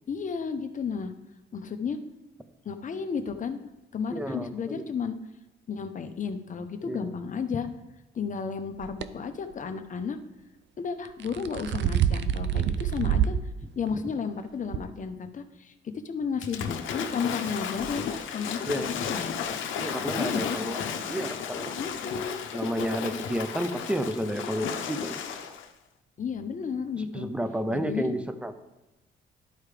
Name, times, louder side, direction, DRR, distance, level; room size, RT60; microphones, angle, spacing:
voice 1, 0.1-1.1 1.5-2.0 2.6-3.6 3.9-5.2 5.7-7.7 8.1-10.2 10.8-13.4 13.8-18.0 18.3-19.4 20.2-20.6 21.8-22.4 26.2-27.3 27.7-28.1, left 6 dB, 40° left, 7 dB, 0.8 m, -33 dB
voice 2, 4.1-4.8 6.8-7.1 18.7-18.9 19.8-21.7 22.5-25.2 27.0-28.5, equal, 5° right, 9 dB, 0.7 m, -31 dB
sound 1, 8.8-9.1 11.0-13.4 13.9-14.0 14.7-14.8, right 9 dB, 65° right, 0.5 m, -26 dB
Waves surf / Splash splatter, 16.4-25.7, left 7 dB, 80° left, 0.8 m, -33 dB
12.0 x 4.7 x 3.4 m, 1.0 s
cardioid pair, 90°, 20 cm